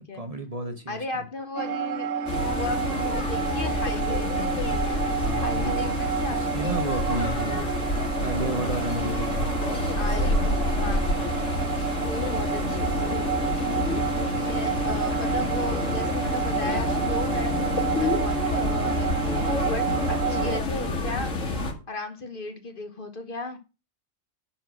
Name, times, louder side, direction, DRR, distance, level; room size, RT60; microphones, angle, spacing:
voice 1, 0.0-1.2 5.2-6.0 6.3-7.7 8.2-9.6 13.6-14.9 19.3-19.4 19.9-20.4, right 1 dB, 30° right, 1.2 m, -33 dB
voice 2, 0.9-4.3 5.4-6.7 10.0-11.3 12.0-13.5 14.4-21.3 21.6-23.6, left 2 dB, 45° left, 1.3 m, -36 dB
sound 1, 1.6-20.6, right 6 dB, 70° right, 1.0 m, -30 dB
sound 2, 2.3-21.7, left 2 dB, 85° left, 2.0 m, -28 dB
11.0 x 4.3 x 6.2 m
omnidirectional pair, 1.3 m